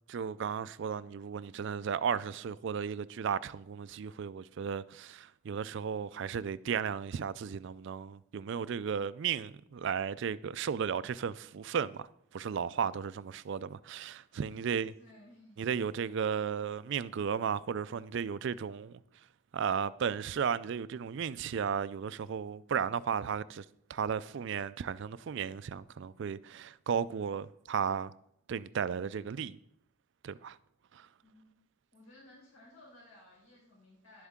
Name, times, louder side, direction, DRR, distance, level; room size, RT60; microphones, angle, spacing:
voice 1, 0.1-12.1 12.3-14.9 15.6-19.0 19.5-23.6 23.9-28.1 28.5-29.6 30.2-30.6 30.9-31.1, right 7 dB, 55° right, 0.3 m, -34 dB
voice 2, 14.3-15.7 31.2-31.7 31.9-34.3, left 1 dB, 80° left, 4.6 m, -58 dB
11.5 x 8.1 x 3.7 m
head